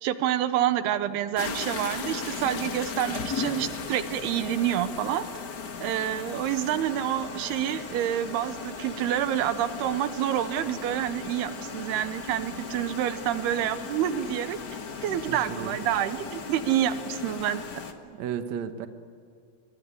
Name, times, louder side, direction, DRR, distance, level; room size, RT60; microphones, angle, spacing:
voice 1, 0.0-5.2 5.8-14.6 15.0-17.7, right 11 dB, 90° right, 11 dB, 3.0 m, -28 dB
sound 1, 1.4-17.9, left 5 dB, 60° left, 1.1 m, -37 dB
voice 2, 15.3-15.8 18.0-18.9, right 8 dB, 60° right, 8 dB, 2.1 m, -34 dB
25.5 x 22.5 x 9.8 m, 2.2 s
omnidirectional pair, 4.5 m